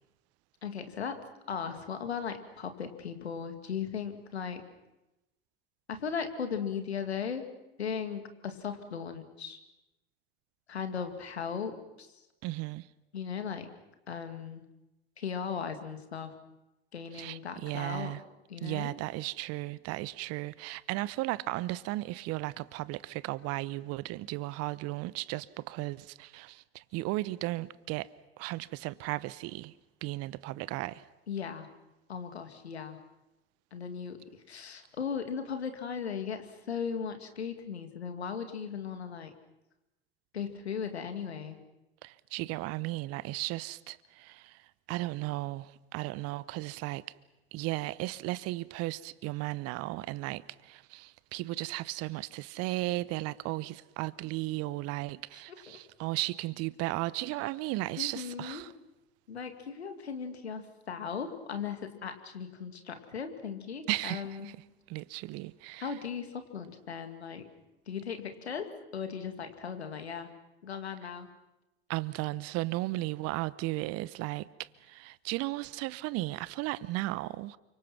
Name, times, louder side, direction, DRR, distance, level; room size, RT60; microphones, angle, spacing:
voice 1, 0.6-1.2 1.5-4.6 5.9-7.5 7.8-9.6 10.7-12.1 13.1-13.7 14.1-14.6 15.2-16.3 16.9-18.1 18.5-19.0 31.3-31.7 32.1-33.0 33.7-34.2 34.5-39.3 40.3-41.6 55.7-55.8 58.0-58.6 59.3-64.5 65.8-67.5 67.9-70.3 70.6-71.3, left 7 dB, 85° left, 2.4 m, -37 dB
voice 2, 12.4-12.9 17.1-18.2 18.6-28.1 28.4-29.7 30.0-31.0 42.0-47.0 47.5-58.7 63.9-64.6 64.9-65.9 71.9-77.6, right 19 dB, 50° right, 0.9 m, -35 dB
29.0 x 25.0 x 6.1 m
hypercardioid pair, 75°, 31 cm